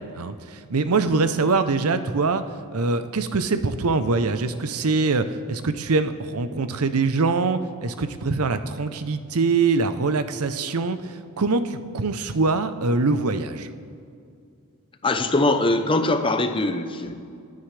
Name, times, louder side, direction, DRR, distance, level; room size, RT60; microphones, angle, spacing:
voice 1, 0.0-2.4 2.7-13.7, right 3 dB, 85° right, 10 dB, 0.7 m, -23 dB
voice 2, 15.0-17.1, left 2 dB, 25° left, 8 dB, 0.8 m, -22 dB
27.5 x 9.4 x 3.3 m, 2.4 s
head